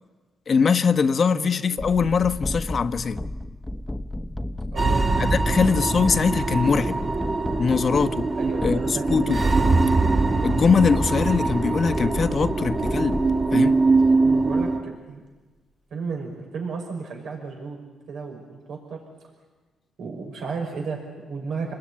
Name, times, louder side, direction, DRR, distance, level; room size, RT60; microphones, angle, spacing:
voice 1, 0.5-3.2 5.2-7.0 7.6-8.3 8.6-9.4 10.4-13.2 13.5-13.8, left 5 dB, 45° left, 1.1 m, -22 dB
sound 1, 1.8-13.9, left 1 dB, 10° left, 1.2 m, -33 dB
voice 2, 4.7-5.1 5.4-5.7 8.3-9.7 14.2-15.2 15.9-17.8 18.1-19.0 20.0-21.7, right 4 dB, 75° right, 5.8 m, -33 dB
sound 2, 4.8-14.8, right 3 dB, 35° right, 3.2 m, -22 dB
29.0 x 20.5 x 9.9 m
cardioid pair, 90°, 0 cm